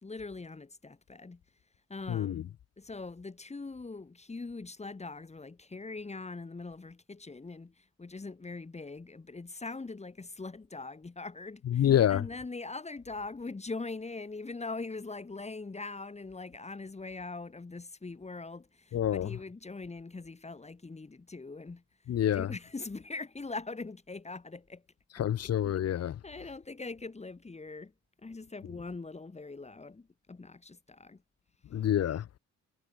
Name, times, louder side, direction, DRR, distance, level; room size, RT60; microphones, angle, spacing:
voice 1, 0.0-1.4 1.9-2.5 2.8-24.8 25.4-25.5 26.2-27.9 28.2-31.2, left 3 dB, 20° left, 2.7 m, -42 dB
voice 2, 2.1-2.4 11.7-12.2 18.9-19.4 22.1-22.5 25.2-26.2 31.7-32.3, left 10 dB, 55° left, 1.0 m, -27 dB
cardioid pair, 90°, 30 cm